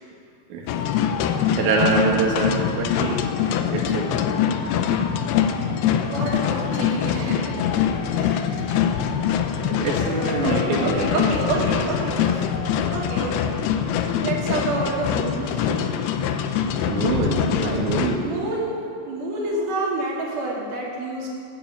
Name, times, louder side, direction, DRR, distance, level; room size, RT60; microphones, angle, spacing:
sound 1, 0.7-18.2, left 8 dB, 85° left, 2.3 m, -24 dB
voice 1, 1.6-3.3 3.7-4.1 8.7-8.8 9.7-11.2 11.5-11.9 16.9-18.3, right 4 dB, 65° right, -1 dB, 2.0 m, -24 dB
voice 2, 6.0-7.6 8.1-8.8 10.4-13.6 14.0-16.0 18.2-18.7 19.1-21.3, right 2 dB, 50° right, -4 dB, 3.8 m, -29 dB
13.0 x 9.9 x 8.8 m, 2.5 s
omnidirectional pair, 5.4 m